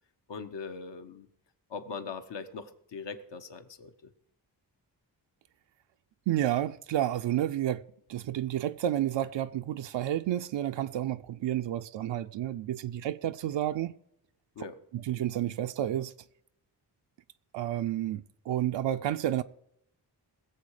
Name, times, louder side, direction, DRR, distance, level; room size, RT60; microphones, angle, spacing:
voice 1, 0.3-1.3 1.7-4.1 14.6-14.8, left 5 dB, 75° left, 1.2 m, -41 dB
voice 2, 6.3-7.8 8.1-13.9 14.9-16.1 17.5-19.4, right 12 dB, 90° right, 0.5 m, -30 dB
20.5 x 7.4 x 4.9 m
wide cardioid pair, 90°, 42 cm